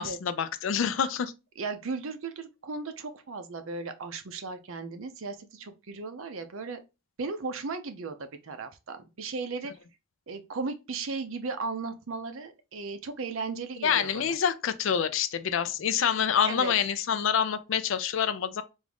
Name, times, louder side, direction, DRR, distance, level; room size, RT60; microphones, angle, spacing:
voice 1, 0.0-1.3 13.8-18.6, left 7 dB, 60° left, 0.4 m, -27 dB
voice 2, 1.6-6.8 7.2-9.7 10.3-14.4 16.5-16.7, right 4 dB, 65° right, 0.6 m, -36 dB
3.5 x 2.6 x 3.4 m
head